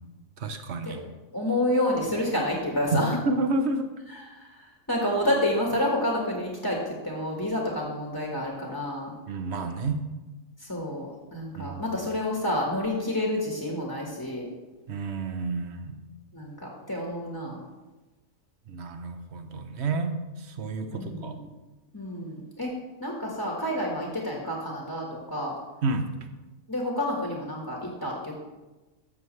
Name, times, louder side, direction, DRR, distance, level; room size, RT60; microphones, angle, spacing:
voice 1, 0.4-1.0 2.9-3.9 9.3-10.0 11.5-12.0 14.9-16.0 18.7-21.4 25.8-26.1, right 3 dB, 55° right, 8 dB, 1.0 m, -30 dB
voice 2, 1.3-3.2 4.1-9.1 10.6-14.5 16.3-17.6 20.9-21.4 21.9-22.7 23.0-25.5 26.7-28.4, left 1 dB, 15° left, -2 dB, 1.4 m, -29 dB
13.5 x 7.2 x 3.2 m, 1.1 s
omnidirectional pair, 1.5 m